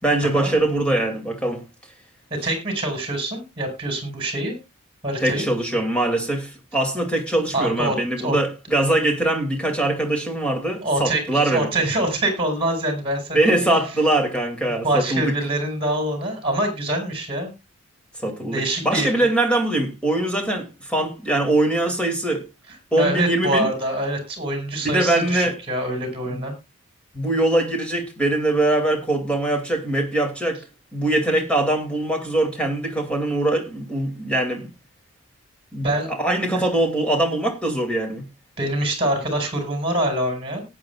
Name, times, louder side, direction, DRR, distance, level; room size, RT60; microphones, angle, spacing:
voice 1, 0.0-1.6 5.2-11.7 13.3-15.3 18.2-22.5 22.9-23.7 24.8-25.6 26.3-26.4 27.1-30.6 30.9-34.7 35.7-38.3, right 1 dB, 5° left, 2.5 m, -22 dB
voice 2, 2.3-4.6 5.0-5.4 7.5-8.4 10.8-13.4 14.8-17.5 18.5-19.3 23.0-26.5 35.8-36.1 38.6-40.6, right 1 dB, 25° right, 5.3 m, -25 dB
18.5 x 9.3 x 2.4 m
head